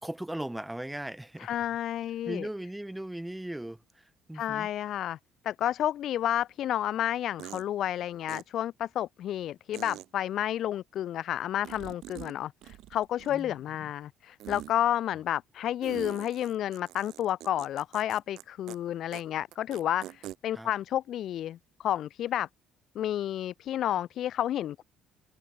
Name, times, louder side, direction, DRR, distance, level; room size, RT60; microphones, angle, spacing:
voice 1, 0.0-1.5 2.2-4.7 13.3-13.9 20.5-20.7, right 1 dB, 5° right, 1.6 m, -38 dB
voice 2, 1.4-2.5 4.3-5.2 5.4-22.5 22.9-24.8, left 11 dB, 55° left, 1.3 m, -31 dB
sound 1, 6.5-6.6 7.4-7.7 8.3-8.4 9.7-10.1 11.6-12.3 12.6-13.5 14.4-14.7 15.8-18.4 18.7-18.8 19.1-19.2 19.5-20.4, right 14 dB, 70° right, 4.1 m, -43 dB
cardioid pair, 140°, 0 cm